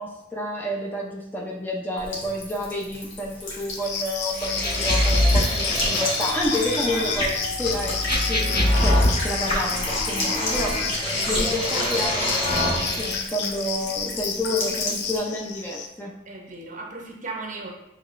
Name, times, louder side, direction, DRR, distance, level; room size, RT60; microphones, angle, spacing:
voice 1, 0.0-8.0 8.3-10.7 11.3-16.1, left 1 dB, 10° left, -2 dB, 0.5 m, -29 dB
Buzz / Water tap faucet / Trickle dribble, 2.0-15.2, left 2 dB, 85° left, 1.3 m, -34 dB
sound 1, 3.7-15.9, left 6 dB, 60° left, 0.4 m, -32 dB
sound 2, 4.4-13.2, left 1 dB, 30° left, 1.2 m, -24 dB
voice 2, 11.1-12.1 16.3-17.7, right 3 dB, 40° right, 1 dB, 0.6 m, -36 dB
6.6 x 3.1 x 2.5 m, 0.88 s
head